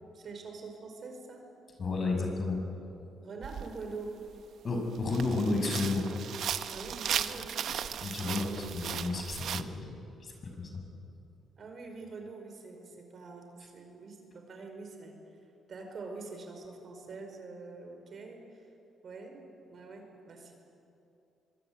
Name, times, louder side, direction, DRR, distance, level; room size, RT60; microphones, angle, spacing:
voice 1, 0.1-1.5 3.2-4.2 6.7-7.7 11.6-15.1 15.7-18.6 19.0-19.4 19.7-20.6, right 3 dB, 50° right, 4 dB, 5.1 m, -45 dB
voice 2, 1.8-2.6 4.6-6.1 8.0-10.0 10.2-10.8, left 3 dB, 45° left, 3 dB, 6.3 m, -32 dB
sound 1, 3.4-3.7 4.3-4.4 4.9-9.6, right 9 dB, 65° right, 0.9 m, -36 dB
24.0 x 23.0 x 9.6 m, 2.7 s
cardioid pair, 90°, 0 cm